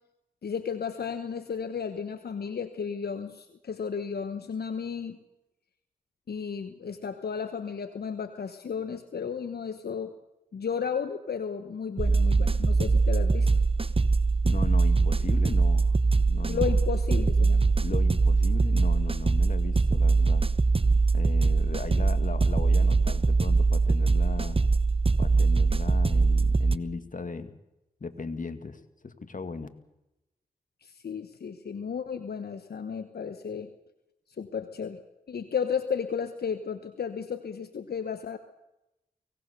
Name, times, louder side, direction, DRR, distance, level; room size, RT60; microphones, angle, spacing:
voice 1, 0.4-5.2 6.3-10.1 10.5-13.5 16.5-17.7 30.8-33.7 34.4-35.0 35.3-38.4, left 6 dB, 75° left, 9 dB, 1.2 m, -33 dB
sound 1, 12.0-26.8, right 3 dB, 35° right, 0.9 m, -22 dB
voice 2, 14.4-16.0 16.3-16.8 17.8-20.5 21.1-24.6 25.2-27.6 28.0-29.7, left 4 dB, 55° left, 9 dB, 2.0 m, -37 dB
24.0 x 18.0 x 6.8 m, 0.93 s
cardioid pair, 40°, 16 cm